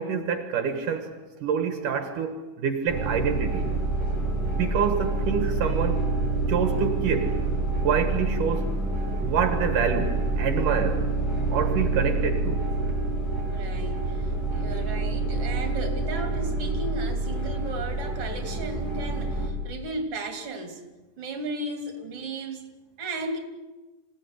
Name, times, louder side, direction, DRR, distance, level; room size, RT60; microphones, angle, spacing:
voice 1, 0.0-3.7 4.3-6.0 6.5-7.4 7.8-8.7 9.2-11.1 11.5-12.6, right 6 dB, 75° right, 7 dB, 3.2 m, -27 dB
sound 1, 2.9-19.5, right 2 dB, 30° left, 4.5 m, -27 dB
voice 2, 13.5-20.8 21.2-22.7 23.0-23.4, right 2 dB, 45° right, 5 dB, 3.6 m, -35 dB
26.5 x 17.5 x 9.8 m, 1.2 s
omnidirectional pair, 3.8 m